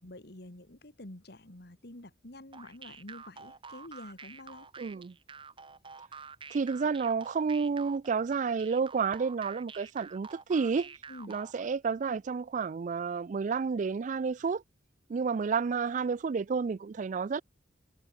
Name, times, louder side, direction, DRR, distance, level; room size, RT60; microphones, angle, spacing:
voice 1, 0.0-4.7 11.1-11.4, left 1 dB, 60° left, 2.4 m, -48 dB
sound 1, 2.5-11.7, right 5 dB, 30° right, 2.3 m, -48 dB
voice 2, 4.8-5.1 6.5-11.0 11.3-14.6 15.1-17.4, right 5 dB, 45° right, 0.3 m, -30 dB
head